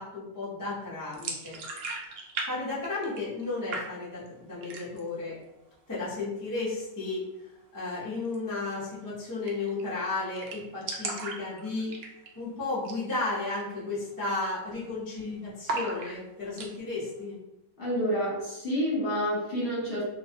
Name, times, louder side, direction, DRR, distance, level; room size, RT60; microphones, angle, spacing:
voice 1, 0.0-1.6 2.5-5.4 5.9-7.2 7.7-11.9 12.3-17.4, left 3 dB, 20° left, -9 dB, 0.6 m, -33 dB
sound 1, 1.1-2.5 2.7-3.4 3.7-4.3 4.6-5.1 5.5-5.6 5.9-6.5 8.2-8.4 8.7-8.8 9.0-9.1 9.5-9.8 10.1-10.2 10.4-12.4 12.8-13.0 13.4-13.5 14.0-14.3 14.6-15.2 15.6-16.7, right 3 dB, 75° right, 0.5 m, -36 dB
voice 2, 17.8-20.0, equal, 50° left, -7 dB, 1.2 m, -28 dB
2.5 x 2.2 x 2.7 m, 0.94 s
omnidirectional pair, 1.5 m